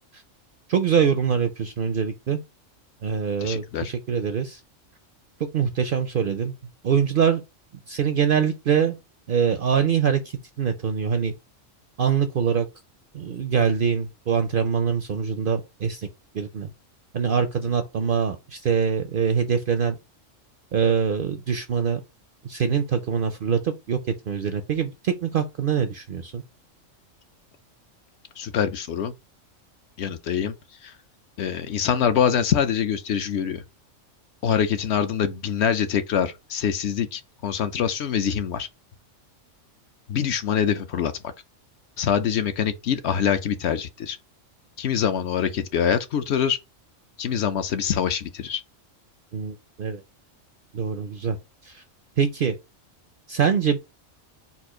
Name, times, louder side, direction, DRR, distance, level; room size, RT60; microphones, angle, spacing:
voice 1, 0.7-2.4 3.0-4.6 5.5-6.5 6.8-7.4 7.9-9.0 9.3-10.2 10.6-11.3 12.0-12.7 13.1-16.1 16.3-16.7 17.1-19.9 20.7-22.0 22.4-24.0 24.3-26.4 49.3-50.0 50.7-51.4 51.6-51.8 52.2-52.5 53.3-53.8, right 7 dB, 60° right, 0.6 m, -24 dB
voice 2, 3.4-3.9 28.4-29.1 30.0-30.5 30.8-30.9 31.4-33.6 34.4-38.7 40.1-41.1 42.0-44.2 44.8-46.6 47.2-48.6, left 8 dB, 65° left, 0.8 m, -24 dB
4.2 x 2.4 x 4.6 m
omnidirectional pair, 1.3 m